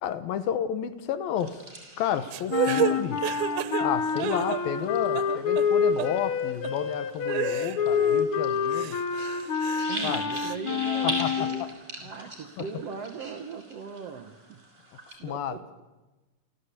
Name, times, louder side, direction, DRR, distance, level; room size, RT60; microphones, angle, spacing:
voice 1, 0.0-1.6 2.0-3.3 3.8-9.0 10.0-10.4 11.0-11.5 12.6-12.7 15.2-15.6, left 9 dB, 75° left, 12 dB, 2.9 m, -31 dB
sound 1, 1.4-15.1, right 1 dB, 20° right, 5.5 m, -42 dB
sound 2, 2.3-4.9 5.1-5.7 6.0-6.1 6.6-6.7 7.3-8.3 8.7-10.6, right 10 dB, 85° right, 2.9 m, -31 dB
sound 3, 2.5-11.7, left 6 dB, 60° left, 1.5 m, -27 dB
voice 2, 9.9-11.7 12.0-14.6 15.2-15.8, right 6 dB, 65° right, 5 dB, 1.6 m, -39 dB
29.0 x 14.5 x 8.5 m, 1.1 s
omnidirectional pair, 4.3 m